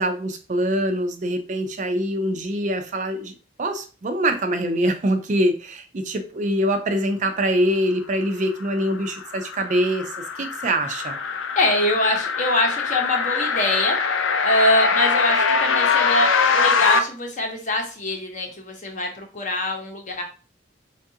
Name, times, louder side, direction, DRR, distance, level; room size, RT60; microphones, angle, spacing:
voice 1, 0.0-11.2, right 1 dB, 40° right, 6 dB, 0.4 m, -24 dB
sound 1, 8.6-17.0, left 5 dB, 80° left, 0.5 m, -22 dB
voice 2, 11.6-14.0 14.4-20.2, left 1 dB, 40° left, 3 dB, 0.8 m, -24 dB
4.5 x 2.3 x 2.7 m, 0.36 s
head